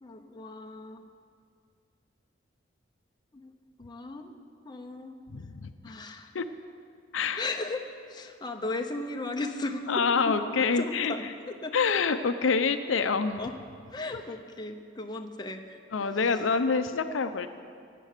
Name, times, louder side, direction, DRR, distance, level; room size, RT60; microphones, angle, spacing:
voice 1, 0.0-1.0 3.3-4.3 4.6-5.2 5.8-6.3 7.4-11.7 13.4-13.5 13.9-16.2, left 2 dB, 20° left, 4 dB, 0.8 m, -36 dB
voice 2, 5.3-5.7 6.3-6.5 7.1-7.4 9.9-11.1 11.7-13.4 15.9-17.5, left 5 dB, 85° left, 9 dB, 0.6 m, -26 dB
17.5 x 7.7 x 6.6 m, 2.2 s
head